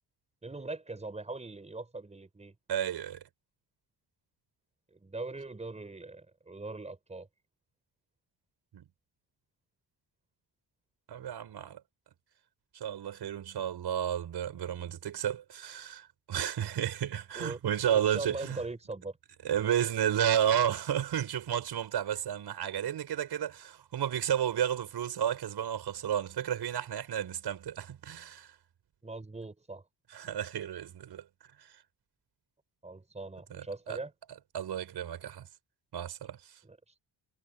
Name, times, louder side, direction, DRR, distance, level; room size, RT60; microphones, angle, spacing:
voice 1, 0.4-2.5 4.9-7.3 17.3-17.6 17.9-19.2 29.0-29.8 32.8-34.1 36.6-36.8, right 3 dB, 15° right, 6.1 m, -41 dB
voice 2, 2.7-3.2 8.7-8.8 11.1-11.8 12.7-18.6 19.4-28.5 30.1-31.2 31.6-31.7 33.5-34.0 34.5-35.5 35.9-36.4, right 9 dB, 65° right, 6.4 m, -32 dB
cardioid pair, 140°, 43 cm